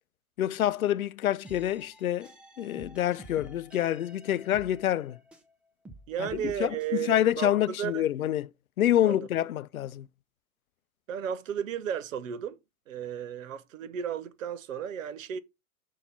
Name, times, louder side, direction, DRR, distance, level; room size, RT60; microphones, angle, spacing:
voice 1, 0.4-2.3 2.6-5.2 6.2-6.3 6.6-6.8 7.0-8.5 8.8-10.1, left 12 dB, 75° left, 0.6 m, -27 dB
sound 1, 1.4-5.5 5.8-6.9, right 1 dB, 5° right, 0.3 m, -50 dB
voice 2, 6.1-7.5 7.8-8.0 9.0-9.3 11.1-12.6 12.9-15.4, right 9 dB, 65° right, 1.0 m, -34 dB
6.4 x 4.2 x 5.2 m
figure-of-eight pair, 105°, 42 cm